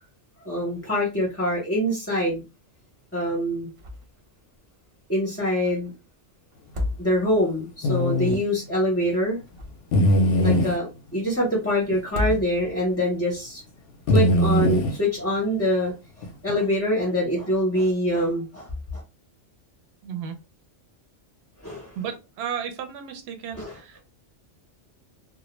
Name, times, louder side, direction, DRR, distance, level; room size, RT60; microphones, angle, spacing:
voice 1, 0.4-2.4 3.1-3.7 5.1-5.9 7.0-9.4 10.4-13.6 14.1-19.0 21.6-22.0 23.6-23.8, equal, 20° left, -3 dB, 0.5 m, -25 dB
sound 1, 3.8-4.3 4.6-4.7 6.5-7.5 9.2-10.1 12.0-12.9, left 2 dB, 50° right, 0.4 m, -32 dB
sound 2, 7.8-8.4 9.9-10.8 11.9-12.0 12.3-12.4 14.1-15.0 16.2-16.5, equal, 60° left, 0.6 m, -20 dB
voice 2, 10.4-10.7 20.0-20.4 22.0-24.0, right 8 dB, 65° right, 6 dB, 0.8 m, -34 dB
2.2 x 2.1 x 3.0 m, 0.28 s
omnidirectional pair, 1.2 m